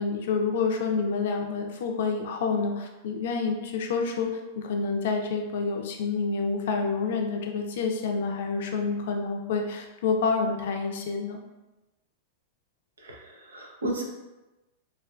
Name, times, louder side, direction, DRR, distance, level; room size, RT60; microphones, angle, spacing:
voice 1, 0.0-4.3 4.6-11.4, left 4 dB, 70° left, 3 dB, 0.4 m, -28 dB
voice 2, 13.0-14.0, right 1 dB, 90° right, 0 dB, 0.5 m, -33 dB
2.4 x 2.3 x 2.2 m, 1.0 s
hypercardioid pair, 110°, 0 cm